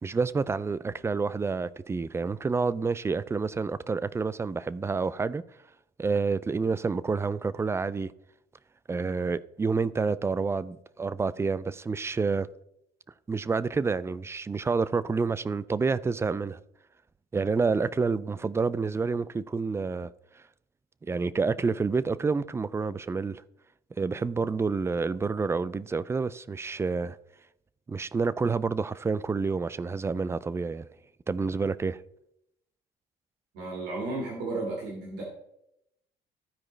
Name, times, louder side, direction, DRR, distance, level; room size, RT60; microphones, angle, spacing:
voice 1, 0.0-5.4 6.0-8.1 8.9-12.5 13.3-16.6 17.3-20.1 21.0-23.4 24.0-27.2 27.9-30.9 31.3-32.0, right 4 dB, 15° right, 0.4 m, -28 dB
voice 2, 33.5-35.2, right 2 dB, 80° right, 2.1 m, -33 dB
14.5 x 4.9 x 3.2 m
cardioid pair, 110°, 17 cm